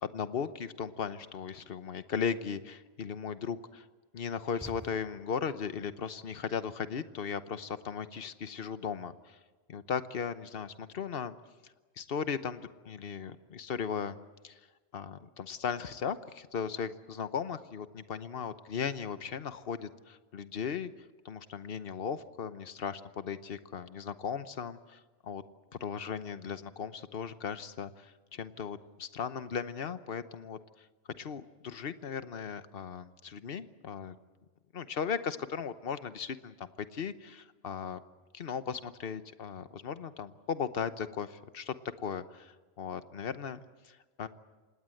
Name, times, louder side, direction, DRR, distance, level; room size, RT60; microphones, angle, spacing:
voice 1, 0.0-3.8 4.1-9.4 9.7-11.3 12.0-14.2 14.4-14.6 14.9-20.9 21.2-25.4 25.8-30.9 31.2-34.2 34.7-38.0 38.3-41.7 42.0-43.6 43.8-44.3, left 6 dB, 50° left, 12 dB, 1.1 m, -37 dB
sound 1, 4.5-5.6, equal, 5° right, 1.9 m, -48 dB
26.5 x 19.0 x 7.8 m, 1.3 s
omnidirectional pair, 1.3 m